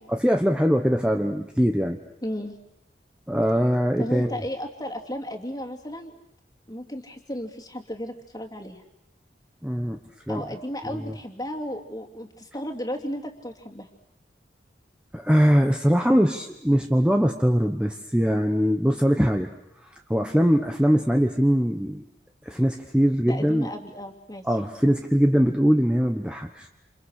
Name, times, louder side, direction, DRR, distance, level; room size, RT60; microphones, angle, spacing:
voice 1, 0.1-2.0 3.3-4.4 9.6-10.0 10.3-10.4 10.8-11.2 15.1-19.5 19.8-22.0 22.4-23.7 24.4-26.7, equal, 5° right, 4 dB, 1.1 m, -22 dB
voice 2, 2.2-2.6 4.0-6.1 6.7-8.8 10.3-13.9 23.2-24.5, equal, 20° left, 3 dB, 2.7 m, -34 dB
28.5 x 28.0 x 6.6 m, 0.80 s
head